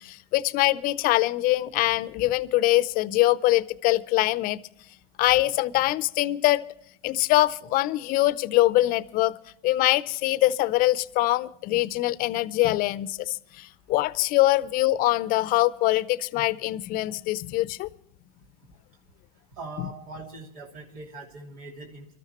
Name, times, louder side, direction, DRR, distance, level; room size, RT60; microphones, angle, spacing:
voice 1, 0.0-4.6 5.2-6.6 7.0-9.3 9.6-17.9, left 17 dB, 45° left, 17 dB, 0.7 m, -23 dB
voice 2, 19.5-22.2, right 2 dB, 75° right, -1 dB, 3.0 m, -41 dB
25.0 x 13.0 x 3.0 m, 0.67 s
hypercardioid pair, 105°, 20 cm